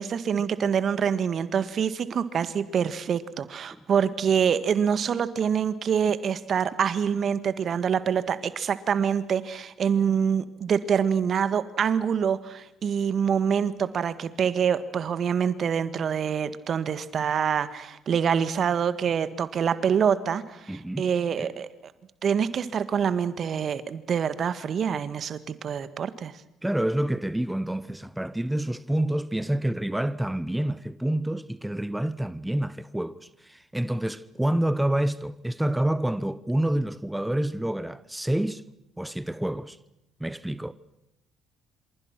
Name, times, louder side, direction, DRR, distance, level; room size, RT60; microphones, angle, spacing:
voice 1, 0.0-21.7 22.2-26.3, right 7 dB, 55° right, 1.7 m, -26 dB
voice 2, 20.7-21.1 21.4-21.5 26.6-38.6 39.0-39.8 40.2-40.7, right 1 dB, 5° right, 1.1 m, -28 dB
27.0 x 27.0 x 6.1 m
hypercardioid pair, 55°, 0 cm